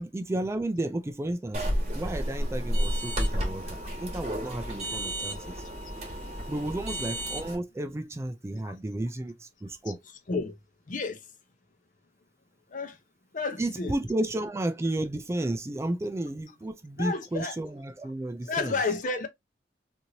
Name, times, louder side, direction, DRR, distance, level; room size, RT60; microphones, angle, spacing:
voice 1, 0.0-1.6 1.9-5.6 6.5-10.0 13.6-18.8, right 1 dB, 15° right, 0.3 m, -32 dB
sound 1, 1.5-7.6, equal, 40° right, 1.3 m, -31 dB
voice 2, 10.9-11.2 12.7-13.0 13.3-13.9 17.0-17.6 18.4-19.3, left 4 dB, 50° left, 0.6 m, -31 dB
3.0 x 2.6 x 2.7 m
head